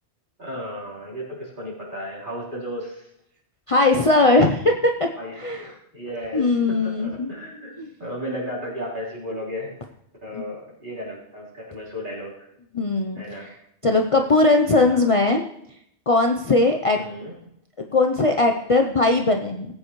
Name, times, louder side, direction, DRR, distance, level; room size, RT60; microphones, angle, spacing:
voice 1, 0.4-3.1 5.2-9.7 10.2-12.3 13.1-13.5 14.7-15.1 16.9-17.3, equal, 45° right, -6 dB, 4.2 m, -34 dB
voice 2, 3.7-5.1 5.4-5.7 6.3-7.3 7.8-7.9 10.3-10.4 12.7-13.2 13.8-15.5 16.1-17.0 17.9-19.7, left 2 dB, 35° left, 3 dB, 0.6 m, -19 dB
18.5 x 8.6 x 3.1 m, 0.75 s
omnidirectional pair, 1.2 m